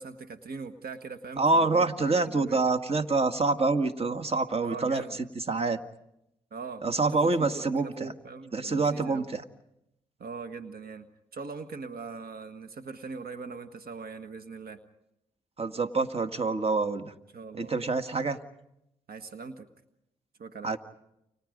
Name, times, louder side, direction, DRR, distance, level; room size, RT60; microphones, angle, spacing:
voice 1, 0.0-2.6 4.6-5.2 6.5-6.8 7.1-9.3 10.2-11.1 11.3-14.8 17.3-17.7 19.1-19.7 20.4-20.8, right 4 dB, 65° right, 8 dB, 1.6 m, -41 dB
voice 2, 1.4-5.8 6.8-8.1 8.5-9.4 15.6-17.1 17.5-18.4 20.6-20.8, right 3 dB, 35° right, 6 dB, 1.9 m, -26 dB
30.0 x 26.5 x 5.3 m, 0.82 s
supercardioid pair, 45°, 17 cm